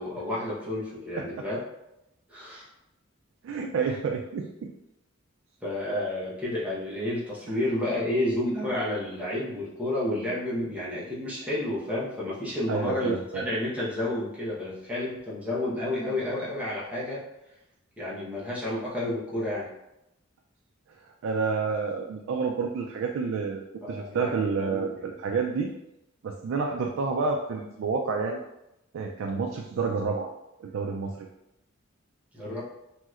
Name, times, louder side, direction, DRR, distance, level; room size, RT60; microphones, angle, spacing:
voice 1, 0.0-1.6 2.3-2.7 5.6-17.2 18.0-19.7 23.8-25.1 32.3-32.6, left 1 dB, 5° right, -8 dB, 0.9 m, -30 dB
voice 2, 3.4-4.7 12.7-13.5 21.2-25.7 26.2-28.4 28.9-30.3 30.6-31.3, right 5 dB, 65° right, 2 dB, 0.3 m, -29 dB
3.1 x 2.9 x 2.4 m, 0.88 s
head